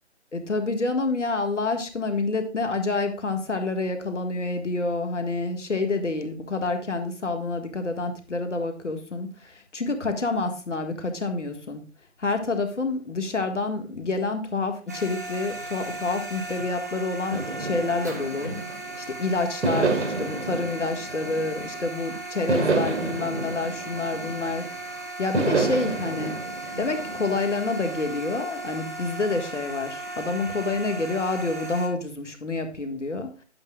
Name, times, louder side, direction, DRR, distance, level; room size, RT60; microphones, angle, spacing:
voice 1, 0.3-11.8 12.2-18.5 19.0-24.9 25.2-26.4 26.8-33.3, left 3 dB, 90° left, 6 dB, 1.8 m, -28 dB
sound 1, 14.9-31.9, right 2 dB, 15° right, 0.7 m, -37 dB
sound 2, 17.3-19.0 19.6-21.9 22.5-24.7 25.3-27.6, right 3 dB, 80° right, 1.9 m, -29 dB
10.5 x 8.7 x 2.3 m, 0.35 s
figure-of-eight pair, 160°, 35 cm